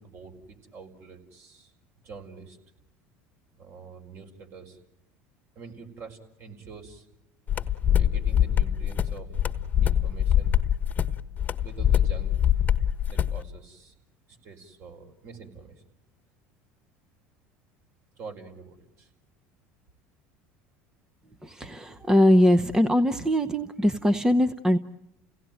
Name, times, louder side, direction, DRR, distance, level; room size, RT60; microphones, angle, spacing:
voice 1, 0.0-1.7 2.0-2.6 3.5-4.8 5.5-7.1 7.9-10.6 11.6-12.5 13.0-13.9 14.3-15.8 18.2-19.1, right 5 dB, 50° right, 4 dB, 4.8 m, -45 dB
sound 1, 7.5-13.4, left 10 dB, 30° left, 1.3 m, -23 dB
voice 2, 21.4-24.8, equal, 10° right, 10 dB, 0.9 m, -21 dB
30.0 x 17.5 x 9.2 m, 0.88 s
supercardioid pair, 95°, 6 cm